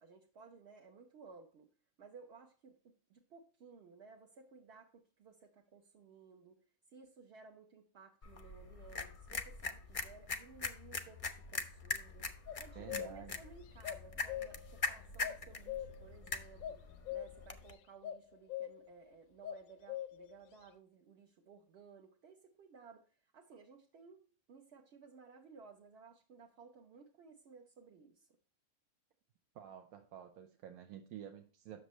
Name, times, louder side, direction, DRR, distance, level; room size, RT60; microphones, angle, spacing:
voice 1, 0.0-1.7 2.0-6.6 6.9-16.8 17.1-24.2 24.5-28.3, right 5 dB, 55° right, 0.9 m, -58 dB
sound 1, 8.2-17.7, left 4 dB, 45° left, 0.4 m, -43 dB
sound 2, 12.5-13.3 13.8-14.8 15.2-16.2 16.6-17.7 18.0-18.2 18.5-19.0 19.4-20.4, left 12 dB, 75° left, 1.0 m, -43 dB
voice 2, 12.8-13.4 29.5-31.8, right 10 dB, 85° right, 1.2 m, -50 dB
8.1 x 6.5 x 3.1 m
omnidirectional pair, 1.5 m